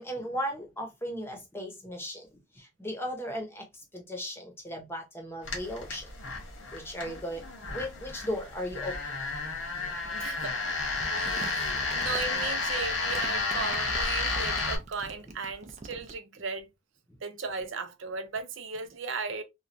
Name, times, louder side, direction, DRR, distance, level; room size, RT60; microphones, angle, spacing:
voice 1, 0.0-2.3 2.5-6.1 6.7-7.4 7.7-9.0, equal, 10° left, 0.8 m, -36 dB
sound 1, 5.4-14.8, left 3 dB, 85° left, 1.2 m, -32 dB
voice 2, 10.0-10.8 11.1-16.7 17.2-19.4, right 4 dB, 80° right, 0.6 m, -37 dB
Crumpling crinkling, 10.9-16.1, right 2 dB, 35° right, 0.5 m, -44 dB
3.1 x 2.2 x 2.5 m
head